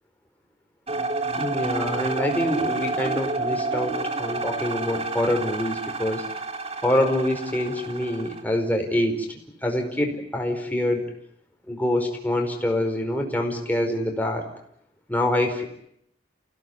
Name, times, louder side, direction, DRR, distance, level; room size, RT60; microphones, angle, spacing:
sound 1, 0.9-8.4, right 3 dB, 35° right, 2.4 m, -29 dB
voice 1, 1.3-6.3 6.8-11.0 11.7-14.4 15.1-15.6, left 1 dB, 10° left, 2 dB, 4.7 m, -25 dB
29.5 x 17.0 x 9.6 m, 0.73 s
head